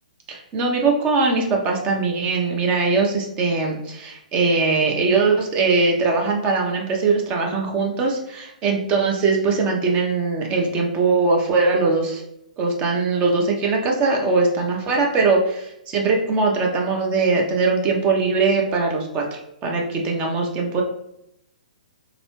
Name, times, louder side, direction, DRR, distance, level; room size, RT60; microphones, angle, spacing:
voice 1, 0.3-12.2 12.6-20.8, right 4 dB, 25° right, 1 dB, 0.8 m, -21 dB
3.5 x 3.0 x 3.0 m, 0.80 s
figure-of-eight pair, 120°, 4 cm